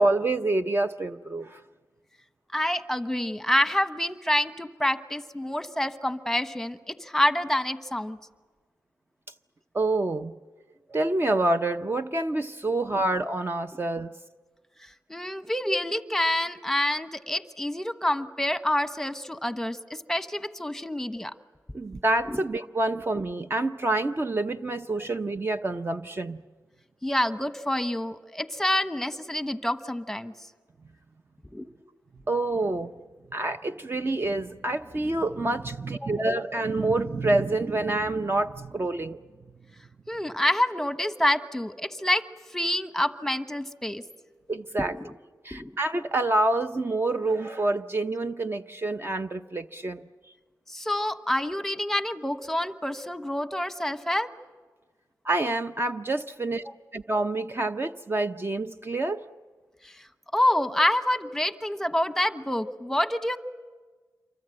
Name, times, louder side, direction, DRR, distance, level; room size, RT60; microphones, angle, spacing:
voice 1, 0.0-1.6 9.7-10.3 10.9-14.1 21.7-26.4 32.3-32.9 33.3-39.2 44.5-44.9 45.4-50.0 55.2-56.6 56.9-59.2, right 2 dB, 35° right, 7 dB, 0.7 m, -27 dB
voice 2, 2.5-8.2 15.1-21.3 22.3-22.4 25.0-25.1 27.0-30.3 31.5-31.6 36.0-36.1 40.1-42.2 42.5-44.0 45.0-45.1 45.5-45.7 50.7-54.3 59.8-60.1 60.3-63.4, left 1 dB, 5° left, 10 dB, 1.1 m, -27 dB
27.5 x 24.0 x 7.8 m, 1.4 s
cardioid pair, 65°, 7 cm